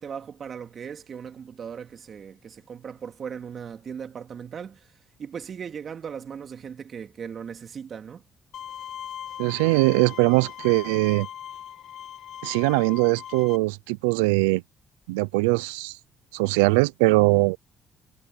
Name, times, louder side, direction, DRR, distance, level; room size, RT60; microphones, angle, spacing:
voice 1, 0.0-8.3, right 7 dB, 55° right, 2.7 m, -38 dB
Bowed string instrument, 8.5-13.6, left 10 dB, 65° left, 1.7 m, -39 dB
voice 2, 9.4-11.3 12.4-14.6 15.1-16.0 16.3-17.6, right 25 dB, 90° right, 0.5 m, -21 dB
hypercardioid pair, 55°, 0 cm